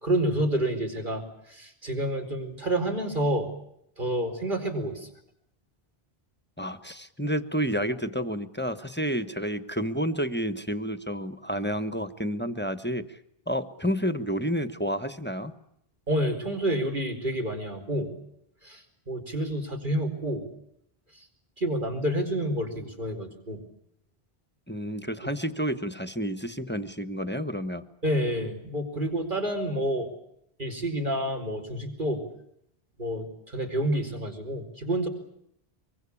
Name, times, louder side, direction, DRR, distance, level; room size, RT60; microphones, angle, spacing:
voice 1, 0.0-3.5 4.0-5.1 16.1-18.1 18.6-20.4 21.6-23.6 28.0-30.1 30.6-32.2 33.0-35.1, right 1 dB, 50° right, 4 dB, 4.8 m, -29 dB
voice 2, 6.6-13.2 13.5-15.5 24.7-27.8, equal, 10° left, 9 dB, 1.1 m, -30 dB
25.0 x 23.5 x 8.6 m, 0.75 s
omnidirectional pair, 1.0 m